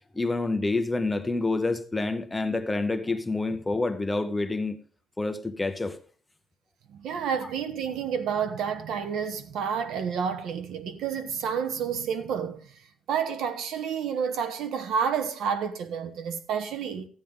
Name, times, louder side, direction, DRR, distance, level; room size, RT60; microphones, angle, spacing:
voice 1, 0.1-4.8 5.2-6.0, left 3 dB, 10° left, 0.7 m, -28 dB
voice 2, 6.9-12.7 13.1-17.1, right 7 dB, 80° right, 1.0 m, -30 dB
13.5 x 9.2 x 3.7 m
cardioid pair, 170°, 0 cm